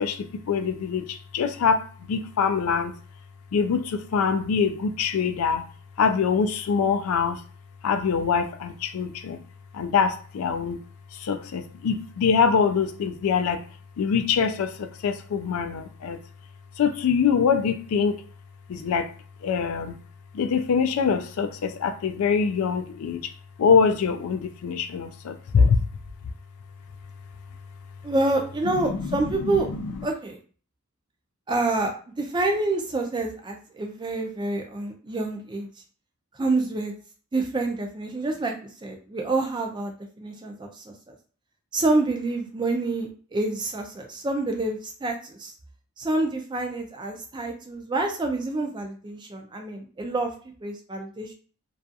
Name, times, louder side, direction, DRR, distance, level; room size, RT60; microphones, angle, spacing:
voice 1, 0.0-2.9 3.5-5.6 6.0-7.4 7.8-9.4 9.7-10.8 11.2-13.6 14.0-16.2 16.8-18.2 18.7-19.1 19.4-20.0 20.3-23.3 23.6-25.8 29.0-29.2, left 6 dB, 75° left, 0.3 m, -24 dB
voice 2, 28.0-29.7 30.0-30.4 31.5-35.7 36.3-36.9 37.3-41.1 41.7-45.5 46.0-50.3 50.6-51.3, right 2 dB, 20° right, 0.3 m, -27 dB
2.4 x 2.3 x 2.6 m
head